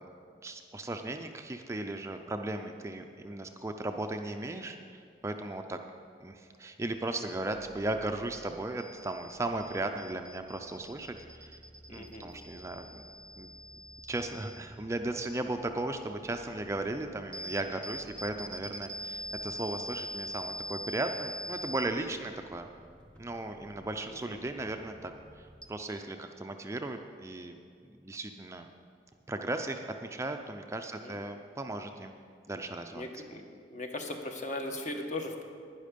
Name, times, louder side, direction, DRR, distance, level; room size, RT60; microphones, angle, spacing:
voice 1, 0.4-5.8 6.2-11.6 11.9-13.0 13.4-13.5 14.1-22.7 23.2-25.1 25.4-27.6 27.9-28.7 29.3-32.1 32.5-33.2, right 2 dB, 15° right, 5 dB, 0.4 m, -36 dB
sound 1, 7.5-25.7, equal, 5° left, 0.9 m, -45 dB
voice 2, 11.9-12.3 24.1-24.4 31.0-31.1 33.0-33.4 33.7-35.4, left 2 dB, 45° left, 3 dB, 1.2 m, -38 dB
11.5 x 10.0 x 5.2 m, 2.3 s
head